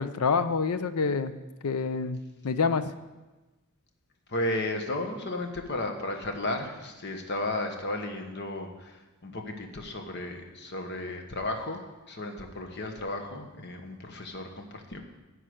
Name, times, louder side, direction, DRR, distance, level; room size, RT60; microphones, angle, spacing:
voice 1, 0.0-1.3 1.6-2.9, left 5 dB, 85° left, 12 dB, 0.6 m, -27 dB
voice 2, 4.3-15.0, left 1 dB, 50° left, 4 dB, 1.1 m, -34 dB
9.9 x 4.9 x 7.8 m, 1.1 s
head